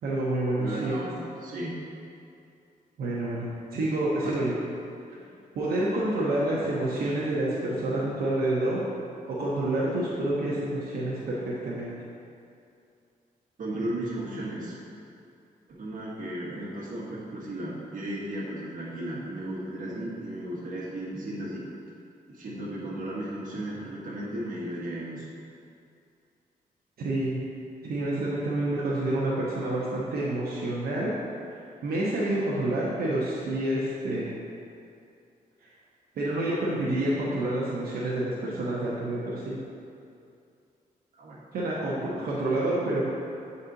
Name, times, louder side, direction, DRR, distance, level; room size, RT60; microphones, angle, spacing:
voice 1, 0.0-1.0 3.0-4.5 5.5-8.8 9.3-11.9 27.0-27.4 27.8-31.1 31.8-34.3 35.6-35.7 36.2-39.5 41.5-43.1, right 1 dB, 85° right, -7 dB, 0.9 m, -28 dB
voice 2, 0.5-1.8 4.2-4.5 5.1-5.3 13.6-14.8 15.7-21.6 22.3-25.3 41.1-41.4, right 1 dB, 60° right, -5 dB, 1.5 m, -35 dB
7.4 x 4.2 x 4.0 m, 2.6 s
wide cardioid pair, 140°, 15 cm